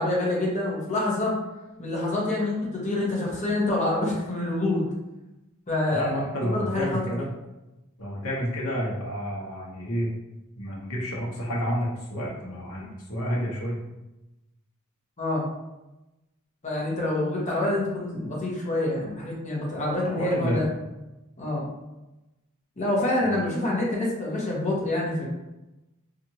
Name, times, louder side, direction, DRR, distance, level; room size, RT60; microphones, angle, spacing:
voice 1, 0.0-1.3 1.8-4.9 5.7-7.0 15.2-15.5 16.6-20.6 21.4-21.7 22.8-25.3, left 2 dB, 30° left, -4 dB, 0.8 m, -26 dB
voice 2, 5.9-7.3 8.0-10.1 10.6-13.8 20.1-20.6 23.2-23.4, equal, 65° left, -4 dB, 0.8 m, -30 dB
2.8 x 2.4 x 2.8 m, 0.99 s
head